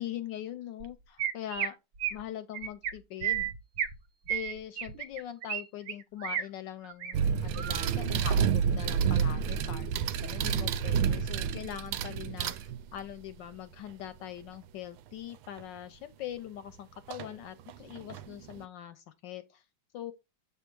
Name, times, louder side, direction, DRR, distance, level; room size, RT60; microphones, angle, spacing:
voice 1, 0.0-1.8 2.1-3.5 4.3-19.6 19.9-20.1, left 11 dB, 75° left, 1.1 m, -42 dB
Chirp tweet, 0.8-0.9 1.2-1.7 2.0-2.2 2.5-2.9 3.2-3.9 4.3-5.6 5.9-6.4 6.8-7.1 7.5-7.9, right 9 dB, 60° right, 1.1 m, -32 dB
sound 1, 7.1-13.1 15.6-15.7 17.1-17.3 17.7-18.6, right 7 dB, 80° right, 1.4 m, -29 dB
7.3 x 3.4 x 4.5 m
omnidirectional pair, 2.3 m